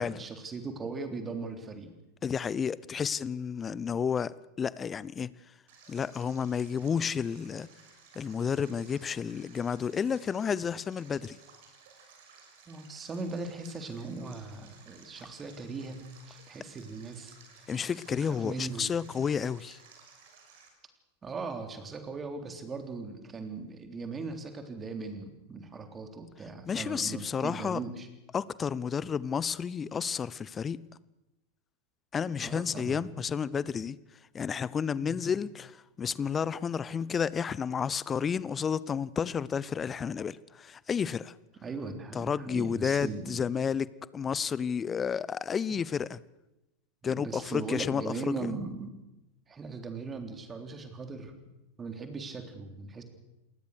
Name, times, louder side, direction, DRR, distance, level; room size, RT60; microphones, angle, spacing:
voice 1, 0.0-1.9 12.7-17.7 18.1-19.0 21.2-28.1 32.4-33.2 35.0-35.2 41.6-43.5 45.7-45.8 47.0-49.0 49.5-51.3 51.8-53.0, right 4 dB, 20° right, 3.6 m, -39 dB
voice 2, 2.2-5.3 5.9-7.7 8.1-11.4 17.7-19.8 26.7-27.8 28.3-30.8 32.1-34.0 34.3-41.3 42.1-43.9 44.1-46.2 47.0-48.1, left 7 dB, 20° left, 0.8 m, -31 dB
Stream, 5.7-20.7, right 5 dB, 55° right, 6.1 m, -57 dB
28.5 x 20.0 x 6.6 m
figure-of-eight pair, 90°, 0 cm